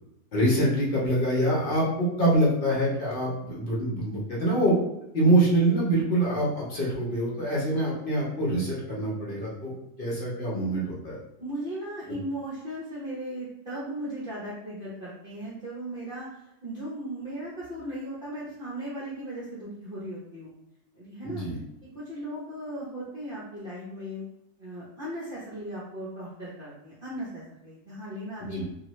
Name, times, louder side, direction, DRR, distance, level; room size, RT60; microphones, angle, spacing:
voice 1, 0.3-4.7 5.1-9.7 10.0-11.2 12.1-12.2 21.2-21.6 28.4-28.6, right 1 dB, 45° left, -5 dB, 0.8 m, -25 dB
voice 2, 11.4-20.5 20.9-21.4 21.9-24.3 24.6-28.6, right 1 dB, 45° right, -8 dB, 0.7 m, -37 dB
2.8 x 2.4 x 3.0 m, 0.87 s
omnidirectional pair, 1.7 m